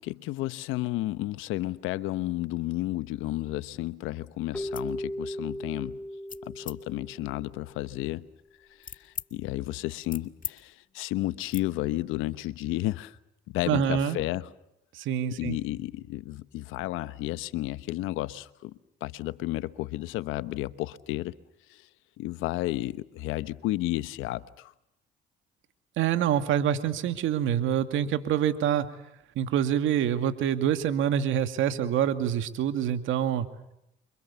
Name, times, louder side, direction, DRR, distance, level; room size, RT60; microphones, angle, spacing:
voice 1, 0.0-6.0 6.4-8.3 8.8-13.2 13.5-14.5 15.4-21.3 21.7-21.9 22.2-24.7, left 16 dB, 85° left, 1.1 m, -32 dB
Keyboard (musical), 4.5-7.8, equal, 5° left, 1.5 m, -37 dB
sound 1, 4.7-4.9 5.4-5.7 6.3-6.8 7.4-9.3 9.7-10.6 10.8-11.0 11.5-11.7, left 6 dB, 40° left, 1.9 m, -42 dB
voice 2, 13.7-14.2 14.9-15.6 26.0-28.9 29.4-33.5, right 9 dB, 75° right, 2.3 m, -26 dB
29.0 x 25.5 x 7.1 m
supercardioid pair, 65°, 20 cm